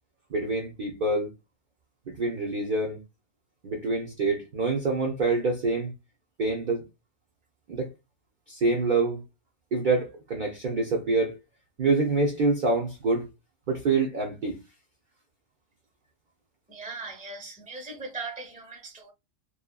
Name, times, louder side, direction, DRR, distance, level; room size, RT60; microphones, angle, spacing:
voice 1, 0.3-1.3 2.1-3.0 3.6-5.9 6.4-6.8 7.7-7.9 8.5-9.2 9.7-11.4 11.8-13.3 13.7-14.6, right 3 dB, 50° right, 0.6 m, -26 dB
voice 2, 16.7-19.1, right 3 dB, 5° right, 0.7 m, -39 dB
2.5 x 2.3 x 2.2 m
omnidirectional pair, 1.4 m